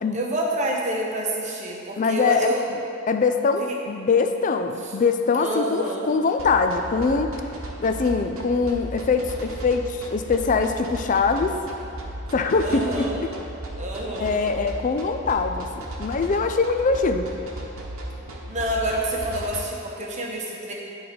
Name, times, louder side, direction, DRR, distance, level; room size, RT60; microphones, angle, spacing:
voice 1, 0.1-2.6 3.6-3.8 5.4-6.1 12.6-13.2 13.8-14.3 18.5-20.7, right 1 dB, 35° right, -2 dB, 0.9 m, -28 dB
voice 2, 2.0-2.5 3.1-7.3 7.8-11.6 12.3-12.8 13.2-13.3 14.2-17.3, left 4 dB, 35° left, 7 dB, 0.4 m, -23 dB
sound 1, 6.4-19.6, right 1 dB, 75° right, 1.0 m, -35 dB
11.0 x 3.9 x 4.3 m, 2.8 s
head